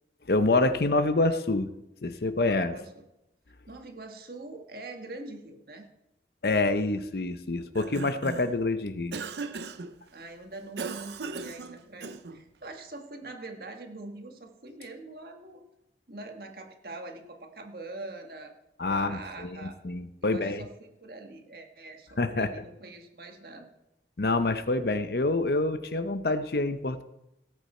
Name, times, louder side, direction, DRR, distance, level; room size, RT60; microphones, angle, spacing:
voice 1, 0.3-1.7 2.0-2.7 6.4-9.2 18.8-20.6 22.2-22.5 24.2-27.0, left 2 dB, 60° left, 10 dB, 0.7 m, -27 dB
voice 2, 2.3-3.0 3.7-5.9 10.1-15.6 16.1-18.5 18.8-19.8 20.2-23.7, right 2 dB, 55° right, 3 dB, 1.6 m, -43 dB
Cough, 7.6-8.6 9.1-9.9 10.8-12.4, right 4 dB, 75° right, 0.6 m, -38 dB
17.5 x 8.3 x 4.4 m, 0.91 s
head